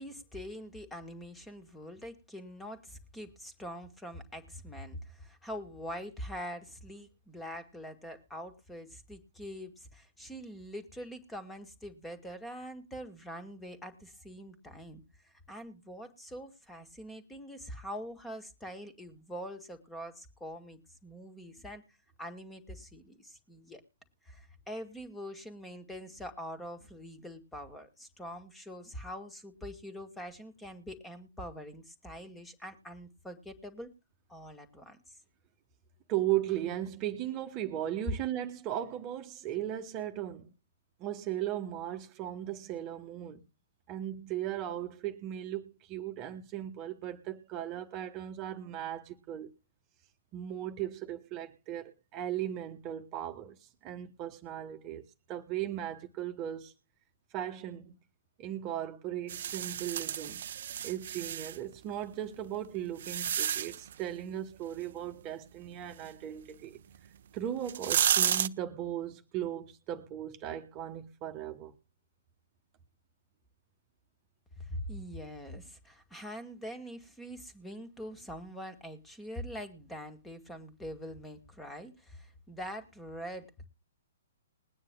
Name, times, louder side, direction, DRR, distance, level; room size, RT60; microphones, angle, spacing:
voice 1, 0.0-23.8 24.2-33.9 34.3-35.2 74.6-83.6, equal, 10° left, 2.0 m, -44 dB
voice 2, 36.1-40.5 41.0-43.4 43.9-49.5 50.3-55.0 55.3-56.7 57.3-57.9 58.4-60.4 60.8-66.8 67.3-71.7, right 11 dB, 30° right, 1.3 m, -37 dB
sound 1, 59.3-61.6 62.3-63.9 66.9-67.0 67.6-68.5, right 9 dB, 55° right, 0.6 m, -31 dB
21.0 x 9.5 x 2.3 m
figure-of-eight pair, 120°, 0 cm